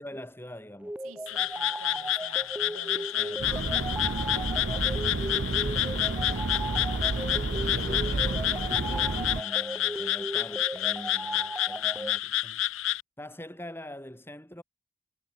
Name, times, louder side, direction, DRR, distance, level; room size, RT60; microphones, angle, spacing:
voice 1, 0.0-1.0 3.2-3.5 7.8-12.6 13.2-14.6, left 1 dB, 10° left, 7.3 m, -44 dB
sound 1, 0.8-12.2, right 1 dB, 5° right, 0.6 m, -37 dB
voice 2, 1.0-6.0 7.6-8.2, right 3 dB, 75° right, 3.2 m, -49 dB
Frog, 1.3-13.0, left 14 dB, 65° left, 1.1 m, -30 dB
sound 2, 3.4-9.4, right 3 dB, 50° right, 0.7 m, -31 dB
head